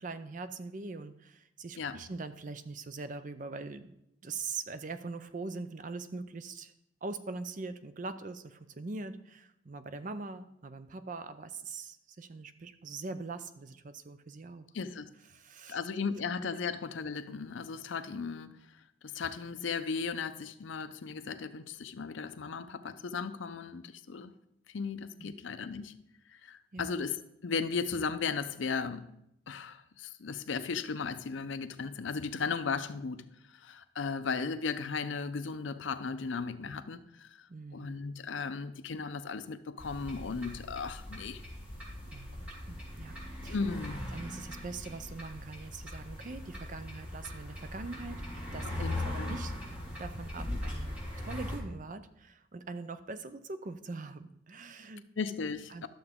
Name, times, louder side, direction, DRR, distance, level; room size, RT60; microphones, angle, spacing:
voice 1, 0.0-3.9 4.2-6.7 7.0-14.7 15.3-15.8 25.2-25.3 26.7-26.9 37.5-37.9 42.1-43.2 43.4-43.6 44.1-48.7 49.0-49.5 50.0-55.0 55.7-55.8, right 3 dB, 45° right, 0.5 m, -42 dB
voice 2, 14.7-15.1 15.7-18.5 19.0-24.3 24.7-25.9 26.4-29.1 29.5-33.3 33.5-37.4 37.7-41.4 43.5-44.0 48.8-49.3 55.2-55.9, left 5 dB, 75° left, 0.5 m, -36 dB
sound 1, 39.8-51.6, left 1 dB, 10° right, 3.0 m, -40 dB
11.5 x 6.9 x 3.6 m
head